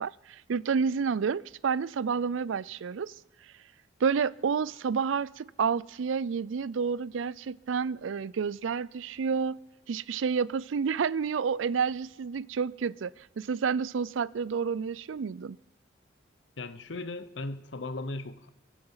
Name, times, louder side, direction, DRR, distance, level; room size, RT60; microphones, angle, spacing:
voice 1, 0.0-3.1 4.0-9.6 9.9-15.6, right 6 dB, 80° right, 0.4 m, -30 dB
voice 2, 16.6-18.5, left 2 dB, 70° left, 0.9 m, -37 dB
23.5 x 9.0 x 5.7 m
head